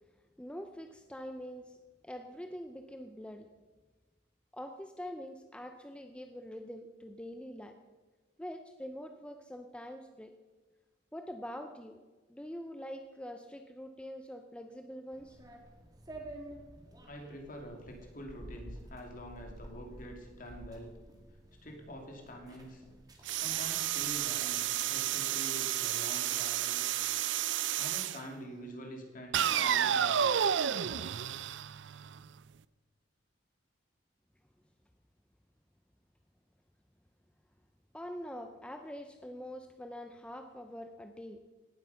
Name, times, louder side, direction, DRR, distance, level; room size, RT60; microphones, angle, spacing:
voice 1, 0.4-1.8 2.0-3.5 4.5-7.8 8.4-10.3 11.1-12.0 12.3-15.4 37.9-41.4, equal, 5° left, 6 dB, 0.6 m, -44 dB
sound 1, 15.1-24.7, right 1 dB, 20° right, 2.0 m, -51 dB
voice 2, 17.1-21.0 21.6-22.8 23.3-26.8 27.7-30.5, equal, 50° left, 2 dB, 2.7 m, -46 dB
sound 2, 23.3-28.2 29.3-32.3, right 10 dB, 85° right, 0.5 m, -31 dB
17.5 x 7.9 x 5.8 m, 1.3 s
head